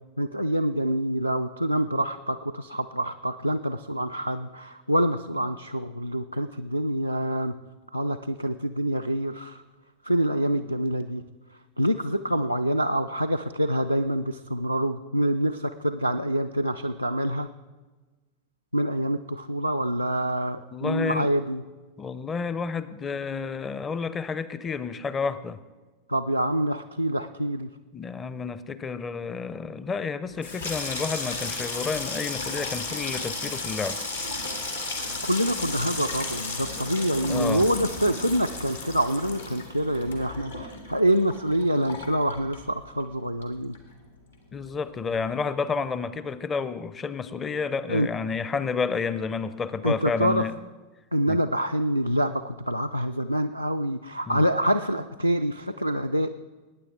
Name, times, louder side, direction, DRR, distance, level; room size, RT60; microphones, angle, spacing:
voice 1, 0.2-7.6 7.9-9.6 10.0-11.2 11.8-17.5 18.7-21.6 26.1-27.7 35.3-43.7 47.9-48.1 49.8-50.5 51.1-56.3, right 1 dB, 90° right, 4 dB, 0.4 m, -26 dB
voice 2, 20.7-21.3 22.0-25.6 27.9-34.0 37.3-37.6 44.5-50.6 51.3-51.4 54.3-54.4, left 5 dB, 20° left, 15 dB, 0.6 m, -30 dB
Water tap faucet / Sink (filling or washing), 30.3-43.1 43.4-44.1 44.3-44.7, left 3 dB, 80° left, 2.3 m, -34 dB
21.0 x 9.5 x 3.7 m, 1.3 s
figure-of-eight pair, 90°, 0 cm